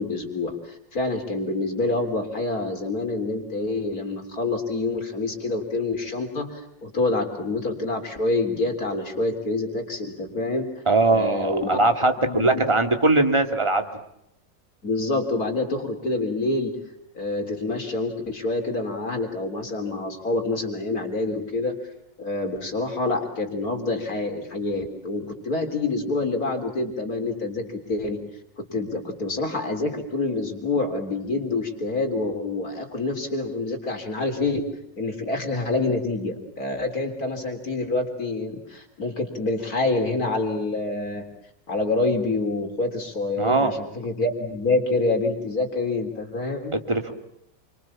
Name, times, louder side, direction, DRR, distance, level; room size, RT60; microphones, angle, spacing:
voice 1, 0.0-10.7 11.1-11.8 12.2-12.5 14.8-16.8 17.2-21.7 22.2-28.2 28.6-34.6 35.0-41.3 41.7-46.7, left 2 dB, 55° left, 4 dB, 3.9 m, -27 dB
voice 2, 10.9-13.9 43.4-43.7 46.7-47.1, right 2 dB, 15° right, 6 dB, 2.4 m, -21 dB
29.0 x 25.0 x 7.2 m, 0.78 s
omnidirectional pair, 1.9 m